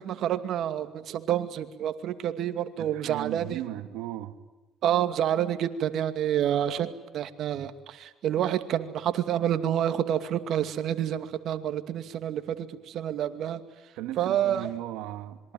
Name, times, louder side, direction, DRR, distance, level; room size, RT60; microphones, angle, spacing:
voice 1, 0.0-3.6 4.8-13.6 14.2-14.7, right 10 dB, 65° right, 2.4 m, -28 dB
voice 2, 2.8-4.4 14.0-15.5, right 14 dB, 80° right, 2.4 m, -37 dB
26.5 x 23.5 x 9.4 m
supercardioid pair, 85°, 0 cm